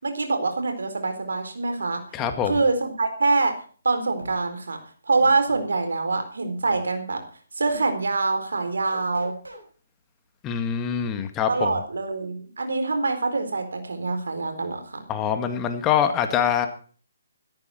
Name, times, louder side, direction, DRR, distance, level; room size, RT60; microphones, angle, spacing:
voice 1, 0.0-3.5 3.8-4.8 5.1-7.2 7.6-9.3 11.5-15.0, right 3 dB, 70° right, 7 dB, 4.3 m, -25 dB
voice 2, 2.1-2.6 10.4-11.7 15.1-16.7, left 8 dB, 20° left, 7 dB, 1.9 m, -24 dB
sound 1, 2.2-2.7 4.2-4.4 5.2-5.7 6.7-6.9 7.7-7.9 8.8-9.6, right 1 dB, 85° right, 6.9 m, -41 dB
16.5 x 13.5 x 4.5 m, 0.42 s
figure-of-eight pair, 140°, 0 cm